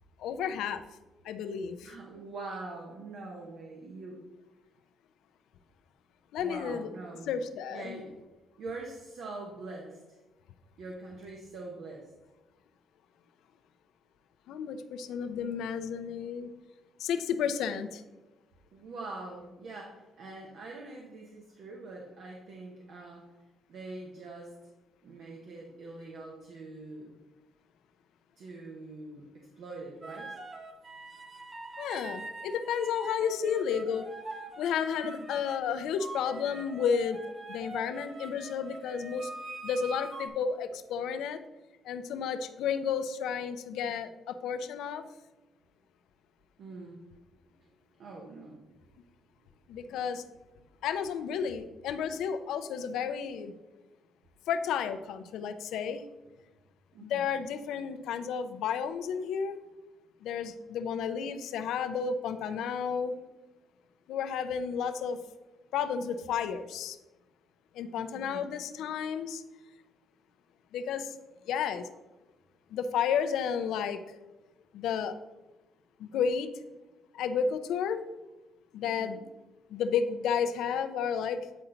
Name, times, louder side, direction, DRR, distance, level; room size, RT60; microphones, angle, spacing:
voice 1, 0.2-0.8 1.2-1.9 6.3-6.9 7.3-8.0 14.5-16.5 17.0-18.0 31.8-34.0 34.6-37.2 37.5-39.3 39.6-41.4 41.8-45.1 49.7-50.2 50.8-53.5 54.5-56.0 57.0-59.6 60.2-63.2 64.1-65.2 65.7-67.0 67.7-69.4 70.7-71.1 71.4-71.9 72.7-74.2 74.7-75.1 76.0-76.5 77.1-78.0 78.7-79.2 79.7-81.5, left 7 dB, 85° left, 9 dB, 0.5 m, -32 dB
voice 2, 1.8-4.2 6.4-7.3 7.7-8.2 8.6-10.2 10.8-12.1 18.7-23.2 23.7-24.5 25.0-27.2 28.4-30.3 35.0-35.3 46.6-47.0 47.6-47.7 48.0-48.6 49.0-49.1 49.8-49.9 56.9-57.3 68.1-68.5 78.8-79.2, right 3 dB, 70° right, 0 dB, 1.1 m, -44 dB
sound 1, 30.0-35.6 36.0-40.3, right 2 dB, 30° right, 1.0 m, -43 dB
8.9 x 4.3 x 3.9 m, 1.1 s
cardioid pair, 90°, 0 cm